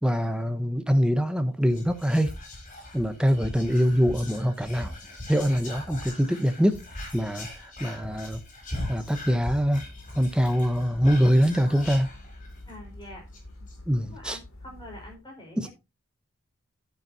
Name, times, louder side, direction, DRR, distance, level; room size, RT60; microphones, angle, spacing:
voice 1, 0.0-2.3 2.9-4.9 5.3-6.8 7.1-7.5 7.8-8.4 8.9-9.8 10.1-12.1 13.9-14.4 15.6-15.7, equal, 5° right, 0.8 m, -24 dB
Whispering, 1.6-12.7 13.0-13.1 13.3-13.7, left 1 dB, 35° left, 3.4 m, -40 dB
sound 1, 9.0-15.2, left 1 dB, 90° left, 2.4 m, -47 dB
voice 2, 12.6-13.3 13.6-13.7 14.0-15.7, left 1 dB, 20° left, 4.9 m, -45 dB
10.5 x 9.0 x 2.7 m
head